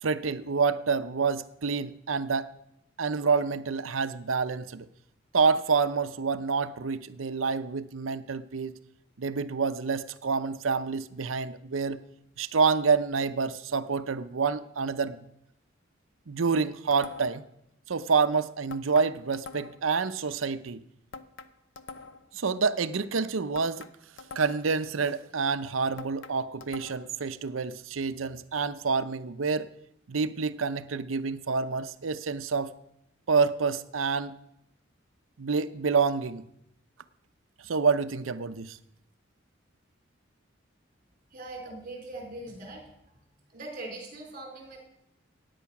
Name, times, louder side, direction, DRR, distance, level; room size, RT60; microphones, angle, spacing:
voice 1, 0.0-2.5 3.0-4.9 5.3-8.8 9.2-12.0 12.4-15.2 16.3-17.4 17.9-20.8 22.3-23.9 24.3-29.7 30.1-32.7 33.3-34.4 35.4-36.4 37.6-38.8, right 5 dB, 90° right, 12 dB, 0.7 m, -28 dB
sound 1, 16.9-17.5 18.7-19.9 21.1-22.3 23.5-24.8 26.0-27.2, left 4 dB, 70° left, 0.8 m, -45 dB
voice 2, 41.3-43.2 43.5-44.8, right 2 dB, 45° right, 1 dB, 4.4 m, -41 dB
15.5 x 9.3 x 5.9 m, 0.79 s
head